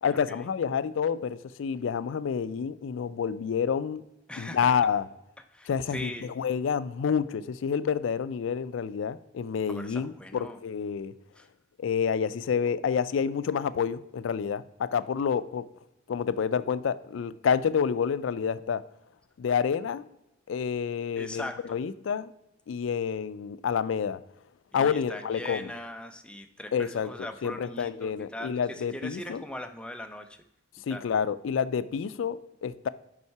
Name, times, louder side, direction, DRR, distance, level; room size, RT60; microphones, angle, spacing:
voice 1, 0.0-4.0 4.4-5.0 5.7-11.1 11.8-15.7 16.1-18.8 19.4-20.0 20.5-22.3 22.7-24.2 24.7-25.7 26.7-27.1 27.4-29.4 30.9-32.9, left 7 dB, 80° left, 16 dB, 0.4 m, -28 dB
voice 2, 4.3-4.8 5.5-6.3 9.7-10.6 11.3-11.5 21.2-21.8 24.7-30.4 30.9-31.0, left 1 dB, 5° left, 7 dB, 0.5 m, -40 dB
5.6 x 5.5 x 4.5 m, 0.86 s
head